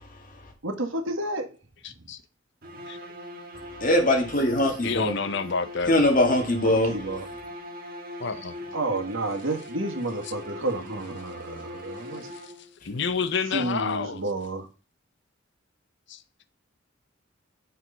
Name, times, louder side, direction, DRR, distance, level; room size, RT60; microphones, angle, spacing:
voice 1, 0.6-1.5 6.9-7.2 8.7-12.2 13.5-14.7, right 2 dB, 85° right, 1.6 m, -30 dB
voice 2, 1.8-2.2 2.9-3.0 4.8-6.0 8.2-8.5 10.2-10.3 11.4-11.6 12.3-12.5 12.8-14.2 16.1-16.2, left 5 dB, 65° left, 0.7 m, -29 dB
sound 1, 2.6-12.8, left 1 dB, 50° right, 1.4 m, -41 dB
voice 3, 3.8-5.1 5.9-7.0, left 1 dB, 45° left, 1.9 m, -21 dB
6.5 x 4.6 x 5.5 m
head